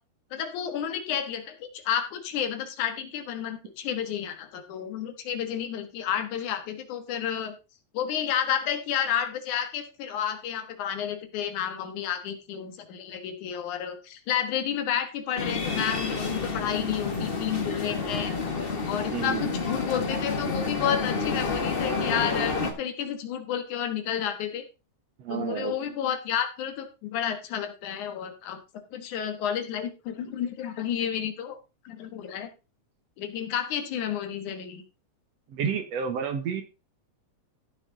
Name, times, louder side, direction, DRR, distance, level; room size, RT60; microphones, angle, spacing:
voice 1, 0.3-7.6 7.9-18.3 18.9-24.6 25.3-28.6 28.9-31.6 31.9-32.5 33.2-34.8, left 9 dB, 80° left, 7 dB, 2.8 m, -31 dB
sound 1, 15.4-22.7, left 4 dB, 40° left, 0.8 m, -29 dB
voice 2, 19.1-19.5 22.6-22.7 25.2-25.8 30.3-30.4 35.5-36.6, right 7 dB, 65° right, 7 dB, 2.3 m, -30 dB
14.5 x 6.1 x 3.9 m, 0.30 s
omnidirectional pair, 3.4 m